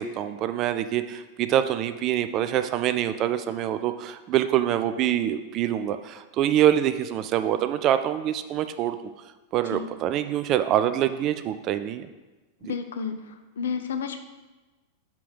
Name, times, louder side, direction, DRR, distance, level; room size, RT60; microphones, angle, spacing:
voice 1, 0.0-9.0 9.5-12.1, right 11 dB, 35° right, 10 dB, 0.4 m, -25 dB
voice 2, 12.6-14.2, left 6 dB, 65° left, 8 dB, 0.7 m, -31 dB
5.9 x 5.1 x 6.2 m, 1.2 s
figure-of-eight pair, 90°, 0 cm